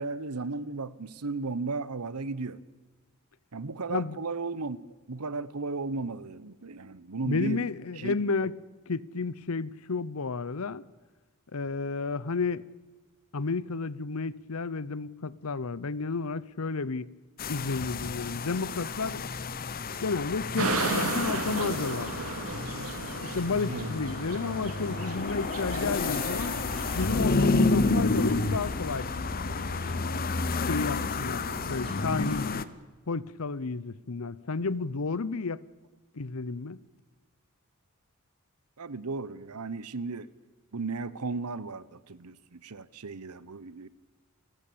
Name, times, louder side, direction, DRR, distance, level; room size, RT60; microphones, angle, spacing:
voice 1, 0.0-2.6 3.5-4.8 5.1-7.6 8.0-8.2 23.7-23.9 38.8-40.3 40.7-43.9, right 3 dB, 90° right, 1.0 m, -35 dB
voice 2, 7.3-8.6 8.9-10.8 11.5-12.7 13.3-17.1 17.4-19.2 20.0-22.2 23.2-26.6 26.9-29.1 30.7-32.5 33.1-35.6 36.1-36.8, left 4 dB, 70° left, 0.8 m, -32 dB
sound 1, 17.4-32.6, left 3 dB, 40° left, 0.8 m, -30 dB
sound 2, 20.6-32.6, right 3 dB, 75° right, 2.4 m, -37 dB
29.0 x 14.5 x 8.6 m
head